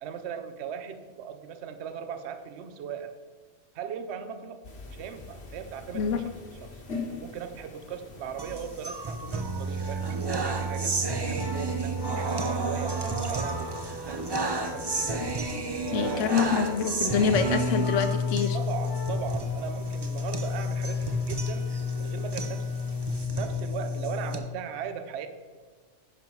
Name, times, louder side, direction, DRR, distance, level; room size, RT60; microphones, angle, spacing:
voice 1, 0.0-3.2 3.7-6.2 6.6-6.8 7.2-10.9 11.3-15.3 15.7-16.5 18.5-21.7 22.0-22.8 23.3-25.3, right 8 dB, 65° right, 10 dB, 0.9 m, -38 dB
sound 1, 4.6-23.3, left 3 dB, 55° left, 1.3 m, -46 dB
sound 2, 8.4-24.4, equal, 35° right, 0.4 m, -30 dB
Organ, 9.5-19.5 19.8-20.1, left 2 dB, 20° left, 1.0 m, -42 dB
voice 2, 15.9-18.6, left 6 dB, 75° left, 8 dB, 1.0 m, -26 dB
10.5 x 5.4 x 4.6 m, 1.5 s
omnidirectional pair, 1.3 m